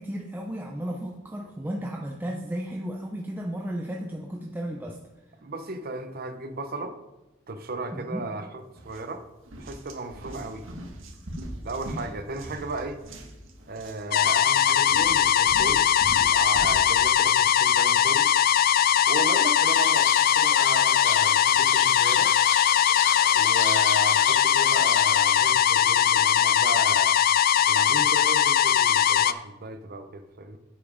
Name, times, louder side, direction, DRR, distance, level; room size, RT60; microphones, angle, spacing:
voice 1, 0.0-5.0 7.9-8.2, equal, 10° right, 0 dB, 0.6 m, -34 dB
voice 2, 5.4-7.0 7.5-9.2 9.6-10.7 11.6-13.0 13.7-15.9 16.2-18.3 19.1-22.3 23.3-27.2 27.7-30.6, right 2 dB, 50° right, 8 dB, 0.8 m, -35 dB
sound 1, 8.8-9.0 9.4-16.9, right 1 dB, 80° right, 1.5 m, -40 dB
sound 2, 14.1-29.3, left 9 dB, 45° left, 0.3 m, -20 dB
sound 3, 19.7-25.5, left 8 dB, 70° left, 0.8 m, -35 dB
8.4 x 7.3 x 5.0 m, 1.0 s
head